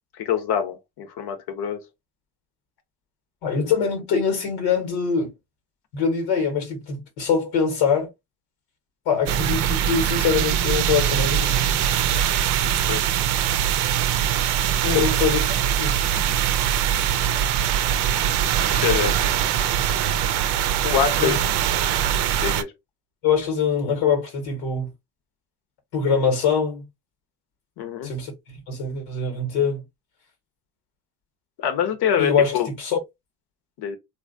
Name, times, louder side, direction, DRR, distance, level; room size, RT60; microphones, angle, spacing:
voice 1, 0.2-1.8 12.6-13.0 14.8-15.0 18.7-19.2 20.8-21.5 22.4-22.7 27.8-28.1 31.6-32.7 33.8-34.0, left 8 dB, 55° left, 0.9 m, -25 dB
voice 2, 3.4-5.3 5.9-8.1 9.0-11.8 14.9-16.0 21.2-21.4 23.2-24.9 25.9-26.8 28.0-29.8 32.2-33.0, left 6 dB, 80° left, 1.3 m, -23 dB
sound 1, 9.3-22.6, right 10 dB, 60° right, 0.6 m, -22 dB
2.9 x 2.4 x 2.5 m
supercardioid pair, 70°, 45 cm